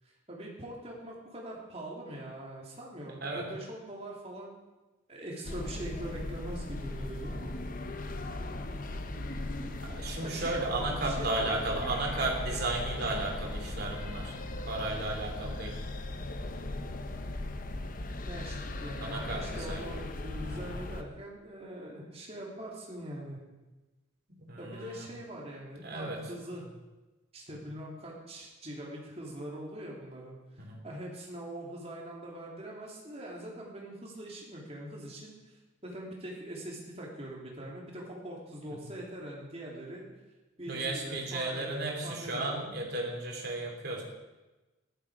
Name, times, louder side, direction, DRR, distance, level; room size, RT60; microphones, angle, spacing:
voice 1, 0.0-4.6 5.1-7.5 10.2-11.5 18.3-23.4 24.6-26.6 27.3-40.0 40.6-42.6, right 1 dB, 30° right, -2 dB, 3.3 m, -42 dB
sound 1, 5.4-21.0, left 2 dB, 45° left, 0.9 m, -38 dB
voice 2, 9.9-14.3 14.7-15.7 19.0-19.9 24.4-25.1 25.8-26.2 30.6-30.8 40.7-44.0, right 2 dB, 50° right, 0 dB, 3.2 m, -34 dB
14.0 x 12.0 x 5.1 m, 1.1 s
head